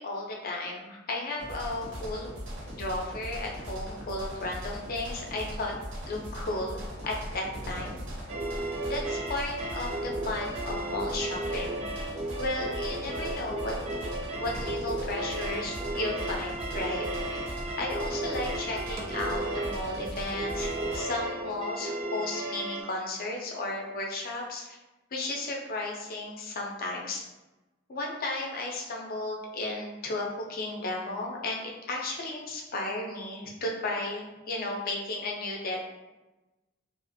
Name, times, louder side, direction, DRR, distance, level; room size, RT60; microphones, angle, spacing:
voice 1, 0.0-2.4 2.7-5.7 6.1-8.0 8.9-11.9 12.4-13.9 14.4-17.4 17.8-24.8 25.1-27.2 27.9-36.0, left 2 dB, 50° left, 0 dB, 0.5 m, -34 dB
sound 1, 1.4-21.0, equal, 65° right, 0.7 m, -39 dB
sound 2, 8.3-22.8, right 2 dB, 30° right, 0.3 m, -34 dB
2.5 x 2.4 x 2.5 m, 1.1 s
head